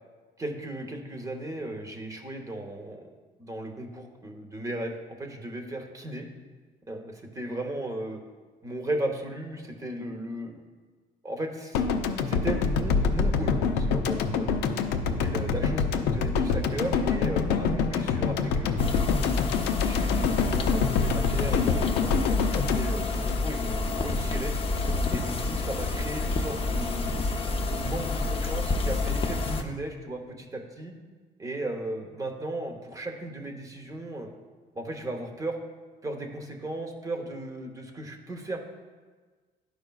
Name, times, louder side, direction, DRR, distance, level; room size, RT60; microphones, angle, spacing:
voice 1, 0.4-3.1 3.4-6.3 6.9-8.2 8.6-10.5 11.2-11.8 12.3-14.7 15.2-18.8 19.6-24.5 25.1-27.2 27.7-30.9 31.4-34.3 34.7-35.6 36.0-38.6, right 1 dB, 20° right, 3 dB, 0.8 m, -36 dB
sound 1, 11.7-23.9, left 5 dB, 85° left, 0.5 m, -26 dB
sound 2, 18.8-29.6, left 3 dB, 35° left, 0.6 m, -28 dB
12.0 x 4.9 x 2.3 m, 1.4 s
cardioid pair, 110°, 17 cm